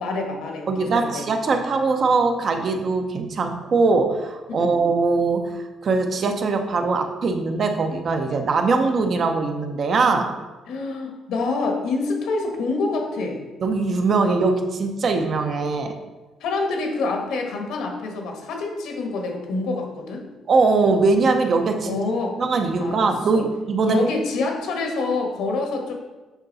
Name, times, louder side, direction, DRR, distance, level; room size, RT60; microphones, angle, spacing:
voice 1, 0.0-1.2 4.6-4.8 10.7-13.4 16.4-20.3 21.8-22.3 22.8-23.4 23.9-25.9, left 3 dB, 80° left, 2 dB, 1.5 m, -26 dB
voice 2, 0.7-10.3 13.6-15.9 20.5-22.0 22.4-24.1, right 4 dB, 35° right, 5 dB, 0.7 m, -21 dB
8.1 x 5.8 x 4.1 m, 1.2 s
cardioid pair, 175°, 0 cm